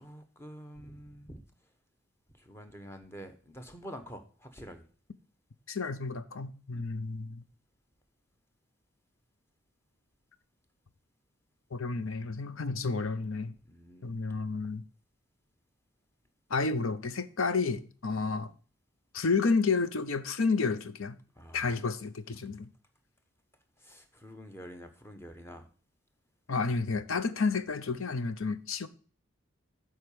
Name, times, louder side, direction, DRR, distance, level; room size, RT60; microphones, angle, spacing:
voice 1, 0.0-1.7 2.3-4.9 6.7-6.8 13.7-14.2 18.1-18.3 21.3-21.8 23.8-25.7, equal, 10° left, 0.9 m, -47 dB
voice 2, 5.7-7.4 11.7-13.5 14.0-14.8 16.5-18.5 19.1-21.2 21.5-22.7 26.5-28.9, left 4 dB, 70° left, 0.7 m, -31 dB
7.9 x 4.7 x 6.9 m
head